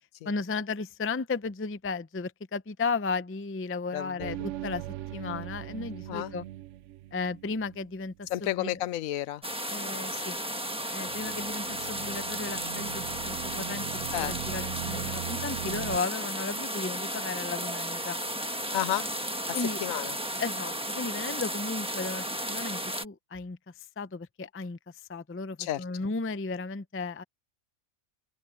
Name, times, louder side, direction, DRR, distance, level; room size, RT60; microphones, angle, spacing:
voice 1, 0.2-4.9 5.1-6.4 7.1-8.7 9.7-10.4 10.9-18.2 19.5-19.8 20.4-24.8 25.1-27.2, left 4 dB, 20° left, 0.3 m, -35 dB
voice 2, 3.9-4.5 6.1-6.3 8.3-9.4 14.1-14.4 18.7-19.1 19.5-20.1 25.6-25.8, left 13 dB, 80° left, 1.0 m, -32 dB
sound 1, 4.2-8.4 11.0-16.0, right 13 dB, 70° right, 0.8 m, -40 dB
sound 2, 9.4-23.1, right 1 dB, 5° right, 1.2 m, -34 dB
open air
omnidirectional pair, 1.4 m